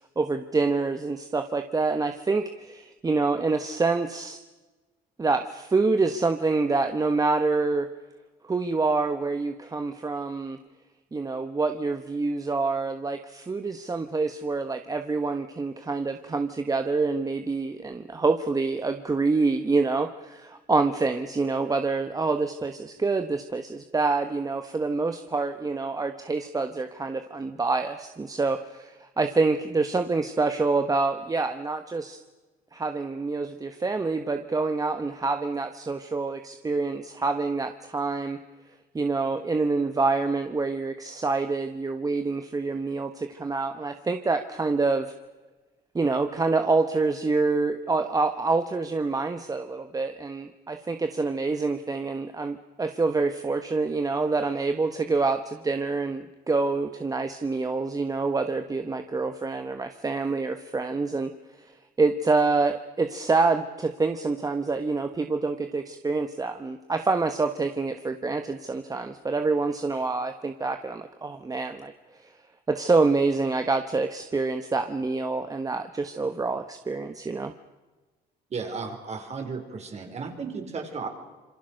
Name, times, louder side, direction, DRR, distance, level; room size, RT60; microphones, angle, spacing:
voice 1, 0.2-4.4 5.2-7.9 8.4-10.6 11.1-32.2 32.7-38.4 38.9-45.1 45.9-61.3 61.6-71.9 72.2-72.3 72.7-77.5, right 3 dB, 20° right, 8 dB, 1.3 m, -26 dB
voice 2, 78.5-81.1, right 4 dB, 40° right, 4 dB, 5.1 m, -34 dB
27.0 x 24.5 x 6.6 m, 1.2 s
cardioid pair, 110°, 17 cm